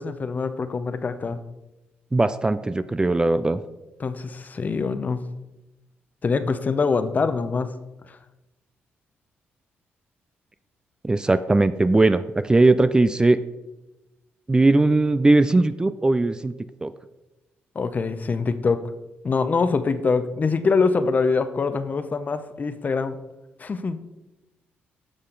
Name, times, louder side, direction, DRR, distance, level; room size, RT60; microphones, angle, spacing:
voice 1, 0.0-1.4 4.0-5.2 6.2-7.7 17.7-18.8 19.2-23.2 23.6-24.0, left 4 dB, 40° left, 11 dB, 0.7 m, -24 dB
voice 2, 2.1-3.6 11.0-13.4 14.5-16.5 16.8-16.9, right 2 dB, 20° right, 13 dB, 0.4 m, -19 dB
9.9 x 6.5 x 3.9 m, 1.0 s
cardioid pair, 75°, 4 cm